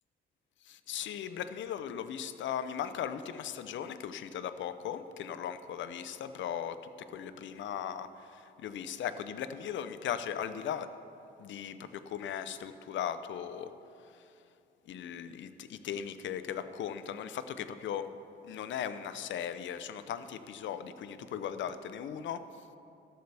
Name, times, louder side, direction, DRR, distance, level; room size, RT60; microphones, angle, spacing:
voice 1, 0.6-10.9 11.4-13.7 14.0-14.3 14.9-18.1 18.4-22.6, left 9 dB, 70° left, 12 dB, 0.7 m, -38 dB
13.5 x 12.5 x 3.4 m, 2.6 s
cardioid pair, 90°, 20 cm